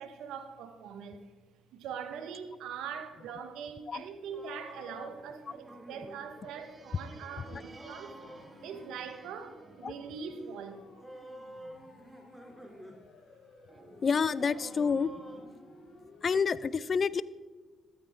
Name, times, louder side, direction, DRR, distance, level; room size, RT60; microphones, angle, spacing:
voice 1, 0.0-1.3 1.7-8.2 8.6-10.9, right 6 dB, 80° right, 1.4 m, -42 dB
sound 1, 4.3-6.2 7.6-8.9 11.0-13.0 13.3-13.4 14.4-15.4, equal, 10° right, 2.8 m, -49 dB
sound 2, 4.7-12.6 13.7-16.3, right 4 dB, 40° right, 1.1 m, -55 dB
Siren, 5.9-16.3, left 4 dB, 65° left, 1.9 m, -58 dB
voice 2, 14.0-15.1 16.2-17.2, left 5 dB, 50° left, 0.5 m, -28 dB
14.0 x 13.0 x 3.7 m
supercardioid pair, 65°, 0 cm